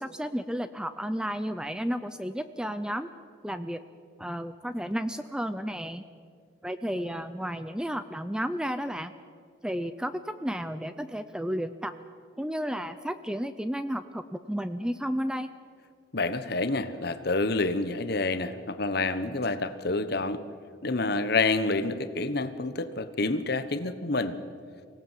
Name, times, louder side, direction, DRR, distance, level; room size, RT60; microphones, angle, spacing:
voice 1, 0.0-3.1 3.4-3.8 4.2-6.0 6.6-9.1 9.6-11.9 12.4-15.5, equal, 5° right, 11 dB, 0.5 m, -32 dB
voice 2, 16.1-20.4 20.8-24.4, left 3 dB, 55° left, 11 dB, 1.1 m, -28 dB
24.5 x 17.5 x 7.4 m, 2.1 s
head